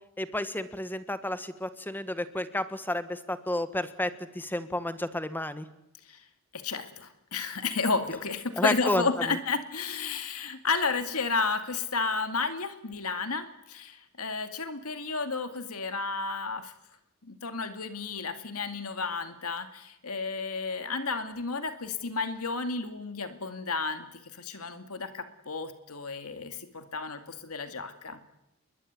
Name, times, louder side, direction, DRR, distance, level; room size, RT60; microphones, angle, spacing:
voice 1, 0.2-4.1 4.3-5.7 8.6-9.1, left 1 dB, 10° left, 11 dB, 1.6 m, -31 dB
voice 2, 6.5-16.7 17.2-28.2, left 4 dB, 80° left, 8 dB, 2.3 m, -32 dB
28.0 x 22.5 x 9.5 m, 0.85 s
head